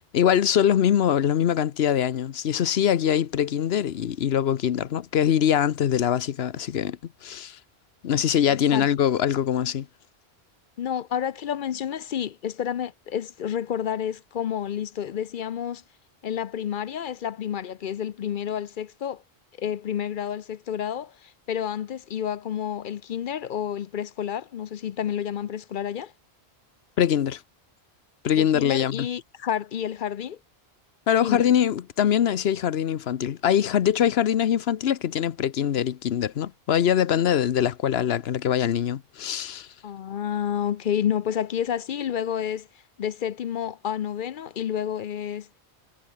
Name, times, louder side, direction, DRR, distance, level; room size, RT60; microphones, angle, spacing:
voice 1, 0.1-7.6 8.0-9.9 27.0-27.4 28.2-29.1 31.1-39.7, left 9 dB, 75° left, 1.0 m, -23 dB
voice 2, 8.5-8.9 10.8-15.8 16.2-19.2 19.6-26.1 28.3-30.4 31.2-31.5 39.8-42.7 43.0-45.5, left 9 dB, 60° left, 0.7 m, -30 dB
omnidirectional pair, 1.1 m